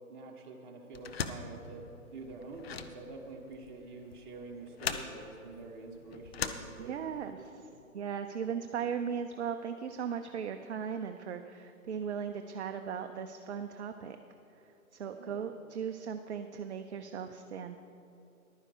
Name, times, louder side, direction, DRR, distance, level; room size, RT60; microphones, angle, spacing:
voice 1, 0.1-7.8 15.1-15.4, right 3 dB, 35° right, 0 dB, 1.5 m, -47 dB
sound 1, 0.9-7.3, left 6 dB, 45° left, 0.7 m, -40 dB
voice 2, 6.8-7.7 7.9-14.2 14.9-17.8, right 7 dB, 50° right, 7 dB, 0.6 m, -37 dB
11.0 x 9.8 x 5.0 m, 2.8 s
figure-of-eight pair, 140°, 44 cm